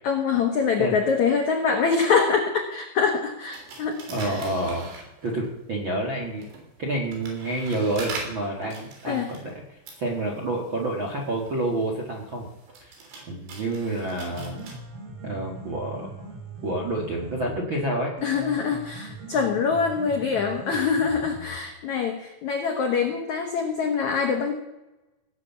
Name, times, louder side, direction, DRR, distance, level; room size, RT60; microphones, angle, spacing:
voice 1, 0.0-4.4 9.1-9.3 18.2-24.5, left 5 dB, 85° left, 3 dB, 1.6 m, -24 dB
sound 1, 3.5-5.6 6.2-14.7, right 3 dB, 70° right, 5.6 m, -42 dB
voice 2, 4.1-4.9 5.2-6.5 6.8-9.6 10.0-12.5 13.3-14.6 15.2-16.1 16.6-18.1, right 1 dB, 55° right, -2 dB, 1.4 m, -28 dB
Piano, 14.0-22.0, right 2 dB, 85° right, 6.2 m, -41 dB
17.5 x 8.8 x 7.1 m, 0.97 s
omnidirectional pair, 5.5 m